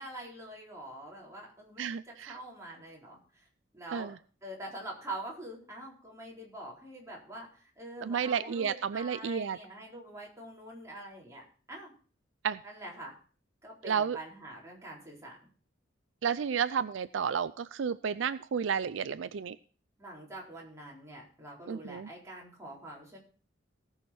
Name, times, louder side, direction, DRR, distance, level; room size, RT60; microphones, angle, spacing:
voice 1, 0.0-3.5 3.7-4.1 4.4-11.4 11.7-11.9 12.6-13.1 13.6-15.4 20.0-23.2, right 1 dB, 15° right, -4 dB, 4.0 m, -45 dB
voice 2, 1.8-2.3 3.9-4.1 8.0-9.6 12.4-12.6 13.8-14.2 16.2-19.6 21.7-22.1, right 7 dB, 75° right, 14 dB, 0.4 m, -31 dB
18.0 x 6.4 x 4.3 m, 0.41 s
head